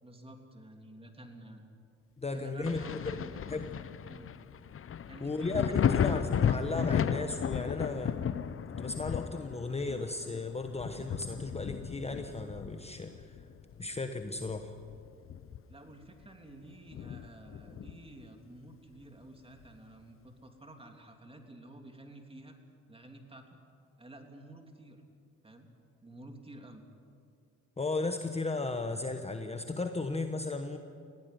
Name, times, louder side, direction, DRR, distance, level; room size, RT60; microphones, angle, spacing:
voice 1, 0.0-1.7 2.3-3.6 4.0-4.3 5.1-6.3 15.7-22.5 22.9-23.6 24.0-25.0 25.4-25.7 26.0-26.9, right 1 dB, 20° right, 4 dB, 3.1 m, -50 dB
voice 2, 2.2-3.1 3.5-3.7 5.2-8.2 8.8-13.4 13.8-14.7 27.8-30.8, left 3 dB, 20° left, 6 dB, 1.2 m, -35 dB
Thunder, 2.6-14.0 14.4-15.9 16.2-16.3 16.9-18.2 19.6-19.7, left 8 dB, 45° left, 0.8 m, -34 dB
20.5 x 16.5 x 9.4 m, 2.3 s
cardioid pair, 90°, 30 cm